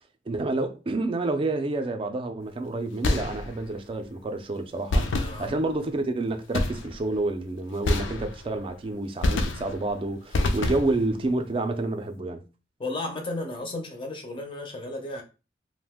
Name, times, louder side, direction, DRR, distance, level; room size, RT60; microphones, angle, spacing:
voice 1, 0.3-12.4, right 2 dB, 30° right, 0.3 m, -29 dB
sound 1, 3.0-3.8 4.9-5.8 6.5-7.1 7.8-8.7 9.2-9.9 10.3-11.1, left 2 dB, 85° left, 0.4 m, -27 dB
voice 2, 5.2-5.5 12.8-15.2, left 2 dB, 25° left, 0.5 m, -34 dB
2.5 x 2.0 x 3.5 m
head